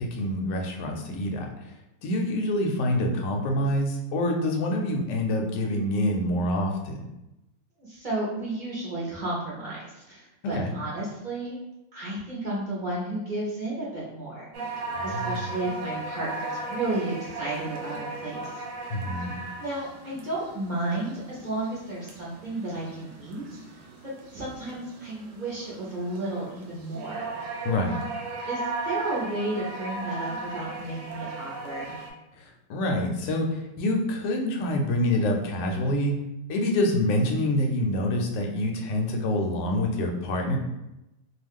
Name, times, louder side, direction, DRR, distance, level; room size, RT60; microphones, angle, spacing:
voice 1, 0.0-1.5 2.0-7.1 10.4-10.7 14.9-15.4 18.9-19.3 27.6-28.0 32.4-36.2 36.5-40.6, left 1 dB, 70° left, 2 dB, 0.9 m, -26 dB
voice 2, 7.8-11.6 11.9-18.6 19.6-23.4 24.0-27.3 28.5-32.0, right 2 dB, 45° right, -6 dB, 0.6 m, -33 dB
sound 1, 14.5-32.1, right 2 dB, 70° right, 1.0 m, -36 dB
2.4 x 2.3 x 3.5 m, 0.92 s
omnidirectional pair, 1.5 m